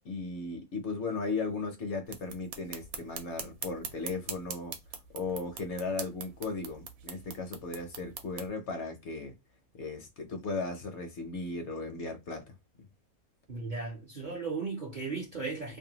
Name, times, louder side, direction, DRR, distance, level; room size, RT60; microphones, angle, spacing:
voice 1, 0.0-4.7 5.1-9.3 9.8-12.5, left 3 dB, 65° left, 0.8 m, -36 dB
sound 1, 2.1-8.5, right 7 dB, 75° right, 1.0 m, -43 dB
voice 2, 13.5-15.8, right 4 dB, 50° right, 0.5 m, -36 dB
2.6 x 2.2 x 2.8 m
omnidirectional pair, 1.5 m